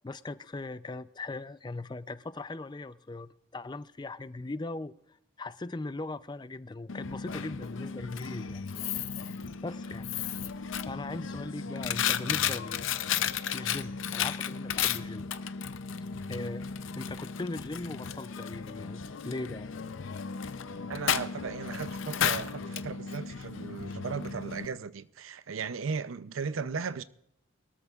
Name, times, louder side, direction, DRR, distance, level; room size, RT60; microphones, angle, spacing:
voice 1, 0.0-8.6 9.6-10.4 10.9-12.9 13.5-15.3 16.3-16.7 17.0-19.7, left 2 dB, 20° left, 0.4 m, -39 dB
Coin (dropping), 6.9-24.7, left 8 dB, 75° left, 0.6 m, -34 dB
voice 2, 20.9-27.0, right 5 dB, 90° right, 0.6 m, -36 dB
23.5 x 13.5 x 2.4 m
head